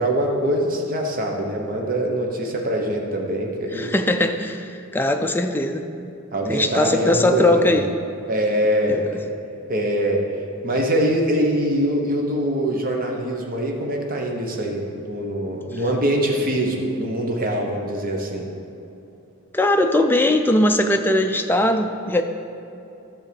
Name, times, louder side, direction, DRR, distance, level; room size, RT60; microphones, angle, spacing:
voice 1, 0.0-3.9 6.3-7.9 8.3-9.0 9.7-10.2 10.6-18.5, right 1 dB, 40° right, 1 dB, 1.1 m, -23 dB
voice 2, 3.7-5.9 6.5-7.9 8.9-9.0 19.5-22.2, left 1 dB, 10° left, 5 dB, 0.4 m, -20 dB
11.0 x 3.7 x 6.9 m, 2.8 s
head